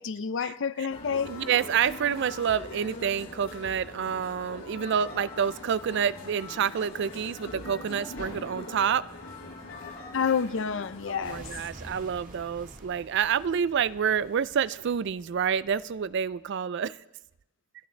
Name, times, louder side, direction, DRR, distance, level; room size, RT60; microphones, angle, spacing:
voice 1, 0.0-1.3 10.1-11.5, left 6 dB, 65° left, 0.5 m, -29 dB
sound 1, 0.9-11.4, left 2 dB, 85° left, 7.3 m, -42 dB
voice 2, 1.3-9.1 11.1-17.0, right 7 dB, 60° right, 0.4 m, -28 dB
sound 2, 11.2-16.4, right 1 dB, 40° right, 1.8 m, -48 dB
29.0 x 10.5 x 3.3 m
head